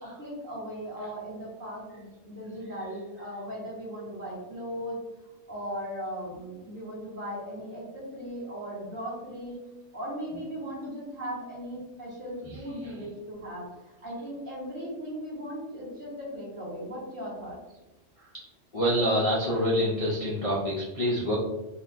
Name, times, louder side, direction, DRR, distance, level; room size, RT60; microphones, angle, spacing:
voice 1, 0.0-5.0 5.5-9.6 9.9-13.7 14.0-17.6, equal, 45° right, -8 dB, 1.4 m, -37 dB
voice 2, 12.4-12.9 18.7-21.4, equal, 60° left, -3 dB, 0.3 m, -27 dB
3.9 x 2.1 x 2.5 m, 1.0 s
omnidirectional pair, 1.3 m